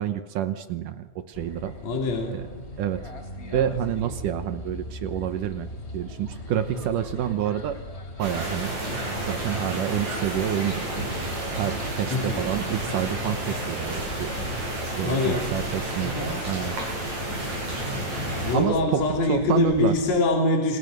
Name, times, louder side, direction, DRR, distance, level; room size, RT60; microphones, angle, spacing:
voice 1, 0.0-1.7 2.3-2.5 2.8-3.1 3.5-5.7 5.9-7.8 8.2-8.7 9.2-10.9 11.6-14.3 15.0-17.0 18.5-20.0, right 10 dB, 70° right, 10 dB, 2.4 m, -28 dB
sound 1, 1.3-20.2, left 1 dB, 20° left, 3.4 m, -39 dB
voice 2, 1.8-2.4 8.9-9.2 12.1-12.4 15.0-15.5 16.0-16.3 18.1-20.8, left 2 dB, 50° left, 0 dB, 4.3 m, -24 dB
sound 2, 8.2-18.6, right 1 dB, 50° right, 8.5 m, -31 dB
28.5 x 28.0 x 6.6 m, 1.3 s
omnidirectional pair, 4.1 m